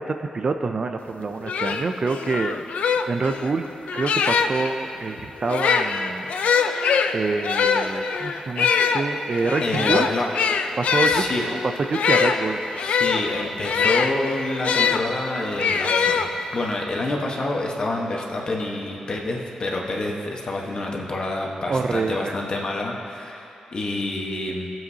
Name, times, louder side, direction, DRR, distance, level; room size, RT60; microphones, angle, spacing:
voice 1, 0.0-2.6 3.1-3.7 3.9-6.3 7.1-10.1 10.8-11.6 11.9-12.6 21.7-22.4, right 4 dB, 40° right, 7 dB, 0.4 m, -26 dB
sound 1, 1.1-1.2 1.5-4.7 5.4-15.0 15.6-16.7, left 6 dB, 90° left, 0.4 m, -23 dB
voice 2, 9.6-10.3 11.0-11.5 12.8-16.2 16.5-24.7, left 2 dB, 45° left, -1 dB, 1.1 m, -27 dB
18.0 x 7.6 x 2.8 m, 2.9 s
wide cardioid pair, 130°, 2 cm